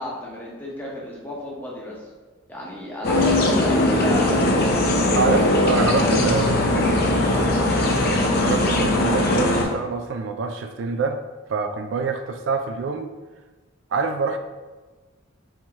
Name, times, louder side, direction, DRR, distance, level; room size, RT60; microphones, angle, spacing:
voice 1, 0.0-2.1 2.5-5.2 5.6-7.5, left 1 dB, 10° left, -5 dB, 0.9 m, -33 dB
sound 1, 3.0-9.6, left 1 dB, 50° left, 0.6 m, -20 dB
voice 2, 5.1-6.9 8.4-11.2 11.5-13.1 13.9-14.4, right 4 dB, 65° right, 7 dB, 0.3 m, -25 dB
4.6 x 2.8 x 3.5 m, 1.3 s
head